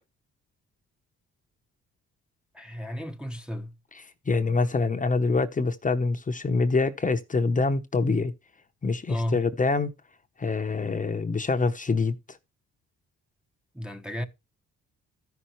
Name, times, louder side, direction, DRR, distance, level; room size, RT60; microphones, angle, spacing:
voice 1, 2.5-3.7 9.1-9.4 13.7-14.2, equal, 5° right, 0.9 m, -33 dB
voice 2, 3.9-8.3 8.8-9.9 10.4-12.1, left 3 dB, 25° left, 0.9 m, -25 dB
14.0 x 5.8 x 3.1 m
cardioid pair, 90°, 30 cm